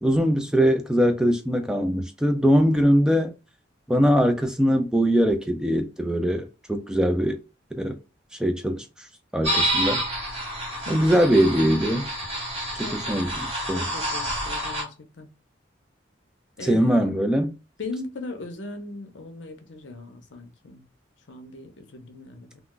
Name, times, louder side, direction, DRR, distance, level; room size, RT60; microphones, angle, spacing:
voice 1, 0.0-3.3 3.9-7.4 7.8-8.0 8.4-8.9 9.3-10.0 10.9-12.1 12.8-13.3 13.7-13.9 16.6-17.5, equal, 5° right, 0.3 m, -21 dB
sound 1, 9.4-14.8, equal, 30° right, 1.3 m, -28 dB
voice 2, 10.9-11.4 12.8-13.2 13.7-15.3 16.6-17.1 17.8-20.9 21.3-22.6, left 2 dB, 70° left, 0.7 m, -39 dB
2.4 x 2.2 x 3.7 m
head